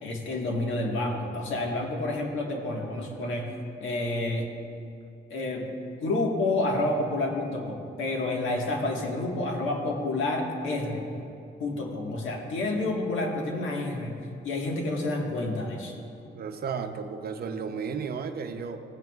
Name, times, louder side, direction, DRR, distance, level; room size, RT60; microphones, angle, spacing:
voice 1, 0.0-3.5 3.8-4.5 5.3-5.7 6.0-11.0 11.6-14.2 14.4-15.9, left 2 dB, 80° left, 1 dB, 1.6 m, -29 dB
voice 2, 16.3-18.8, right 6 dB, 50° right, 7 dB, 0.7 m, -33 dB
16.0 x 9.1 x 2.4 m, 2.6 s
cardioid pair, 90°, 20 cm